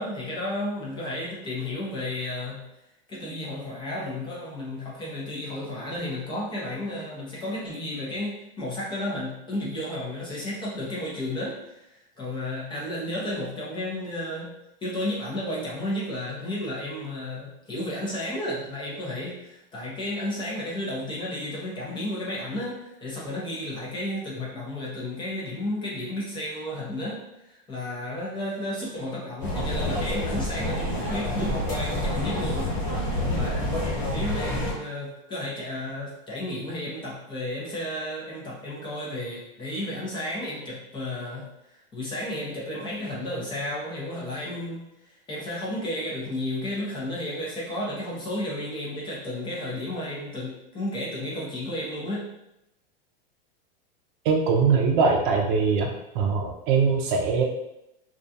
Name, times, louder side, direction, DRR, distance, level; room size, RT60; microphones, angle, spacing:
voice 1, 0.0-2.6 3.1-14.5 14.8-32.8 33.3-52.2, left 1 dB, 15° left, -5 dB, 0.5 m, -33 dB
sound 1, 29.4-34.7, left 1 dB, 35° left, 1.3 m, -28 dB
voice 2, 54.2-55.9 56.1-57.4, right 5 dB, 60° right, 1 dB, 0.6 m, -22 dB
2.3 x 2.2 x 2.6 m, 0.86 s
supercardioid pair, 130°, 29 cm